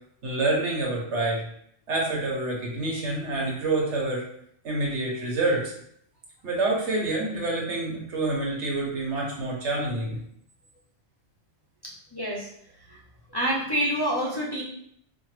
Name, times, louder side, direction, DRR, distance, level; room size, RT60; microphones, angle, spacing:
voice 1, 0.2-1.4 1.9-4.2 4.6-5.7 6.4-10.2, right 2 dB, 85° right, -2 dB, 1.4 m, -27 dB
voice 2, 11.8-12.5 12.9-13.0 13.3-14.6, right 1 dB, 25° left, -4 dB, 0.6 m, -27 dB
4.9 x 2.1 x 3.2 m, 0.70 s
omnidirectional pair, 1.2 m